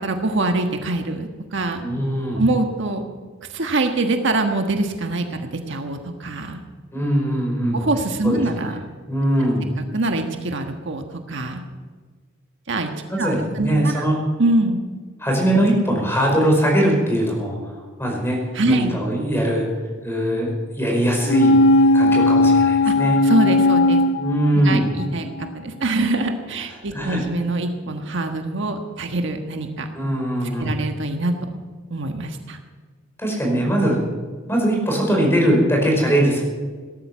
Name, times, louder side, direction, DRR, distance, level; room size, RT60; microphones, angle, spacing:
voice 1, 0.0-1.8 2.3-3.0 3.5-6.6 7.7-8.8 9.9-11.6 12.7-12.9 13.2-14.0 14.4-14.8 18.5-19.0 22.8-22.9 23.2-24.0 24.5-25.3 25.5-29.9 30.6-31.6 31.9-32.6, right 2 dB, 65° right, 5 dB, 1.5 m, -24 dB
voice 2, 1.8-2.4 6.9-7.8 8.2-8.8 9.1-9.7 13.1-14.2 15.2-17.7 18.0-18.4 18.7-19.7 20.0-23.2 24.2-24.9 26.9-27.2 29.9-30.8 33.2-34.0 34.5-36.4, right 1 dB, 10° left, 0 dB, 5.3 m, -21 dB
sound 1, 21.3-25.1 25.4-25.5, left 2 dB, 65° left, 0.6 m, -17 dB
18.0 x 13.0 x 6.2 m, 1.5 s
head